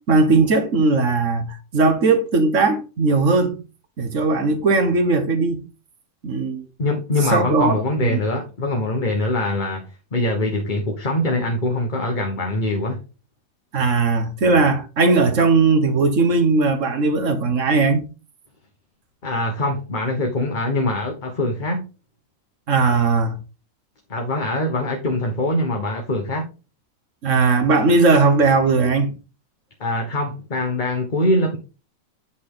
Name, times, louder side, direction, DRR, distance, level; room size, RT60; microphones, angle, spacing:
voice 1, 0.0-1.4 1.7-3.6 4.0-5.7 6.2-6.7 7.3-7.7 8.0-8.2 13.7-18.0 22.7-23.4 27.2-29.2, right 3 dB, 65° right, 1.6 m, -18 dB
voice 2, 6.8-13.0 19.2-21.9 24.1-26.5 29.8-31.6, left 1 dB, 35° left, 1.3 m, -23 dB
8.3 x 6.2 x 3.8 m
omnidirectional pair, 1.4 m